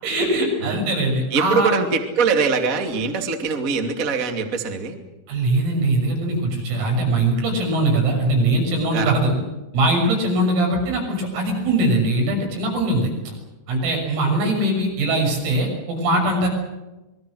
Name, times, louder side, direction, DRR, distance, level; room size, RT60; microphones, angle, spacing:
voice 1, 0.0-1.7 5.3-9.3 9.7-13.1 13.7-16.5, right 1 dB, 90° right, 2 dB, 9.0 m, -21 dB
voice 2, 1.3-5.0 8.9-9.2, right 5 dB, 30° right, 4 dB, 1.5 m, -22 dB
27.0 x 23.0 x 6.4 m, 1.1 s
omnidirectional pair, 5.9 m